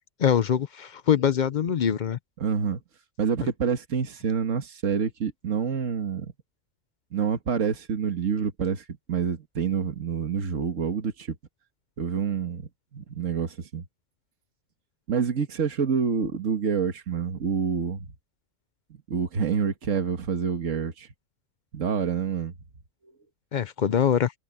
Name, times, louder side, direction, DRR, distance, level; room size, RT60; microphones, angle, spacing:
voice 1, 0.2-2.2 23.5-24.3, left 8 dB, 55° left, 0.6 m, -23 dB
voice 2, 2.4-2.8 3.2-6.3 7.1-11.4 12.0-12.6 12.9-13.9 15.1-18.1 19.1-21.1 21.7-22.5, right 6 dB, 75° right, 1.9 m, -27 dB
omnidirectional pair, 1.3 m